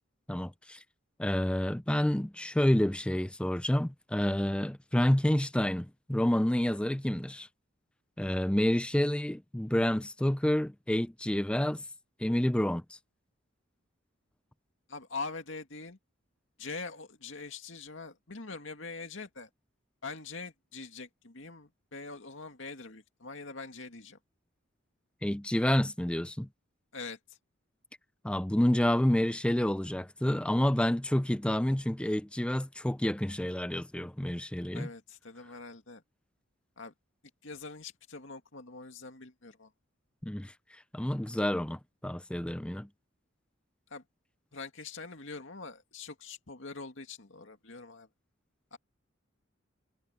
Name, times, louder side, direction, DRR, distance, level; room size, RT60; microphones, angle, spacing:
voice 1, 0.3-0.8 1.2-7.5 8.2-11.8 12.2-12.8 25.2-26.5 28.2-34.9 40.2-40.5 40.9-42.9, left 1 dB, 5° left, 0.5 m, -29 dB
voice 2, 14.9-16.0 16.6-19.5 20.0-24.2 26.9-27.2 34.7-36.0 36.8-36.9 37.4-39.7 43.9-44.0 44.5-48.1 48.7-48.8, left 4 dB, 70° left, 2.3 m, -43 dB
head